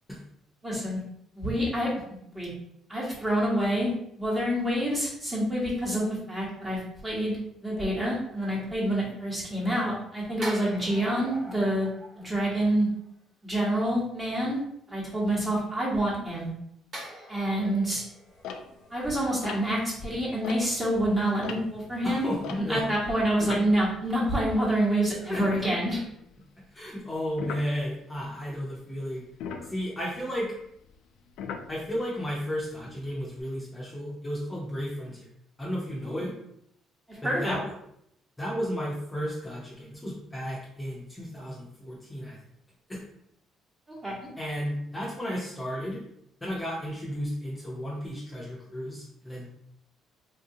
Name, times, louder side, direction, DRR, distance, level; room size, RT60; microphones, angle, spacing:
voice 1, 0.6-1.0 1.3-1.9 2.3-2.5 2.9-7.3 7.6-11.9 12.1-12.9 13.4-14.6 14.9-16.5 17.3-18.0 18.9-26.0 36.0-36.1 37.1-37.5 44.0-44.2, right 1 dB, 15° right, -5 dB, 1.2 m, -27 dB
sound 1, 10.4-13.1 16.9-20.1 20.4-20.6, right 1 dB, 45° right, 0.8 m, -44 dB
sound 2, 18.4-21.0 21.3-24.8 25.1-25.2 25.4-26.3 27.4-27.7 29.3-32.2 32.8-33.4, left 6 dB, 85° left, 0.3 m, -40 dB
voice 2, 22.0-22.8 25.3-25.4 26.7-29.2 29.7-30.5 31.7-35.3 35.6-36.3 37.3-37.6 38.4-42.4 42.9-43.0 44.4-46.0 46.4-49.4, equal, 15° left, -6 dB, 0.7 m, -33 dB
3.5 x 2.6 x 2.7 m, 0.73 s
cardioid pair, 140°, 0 cm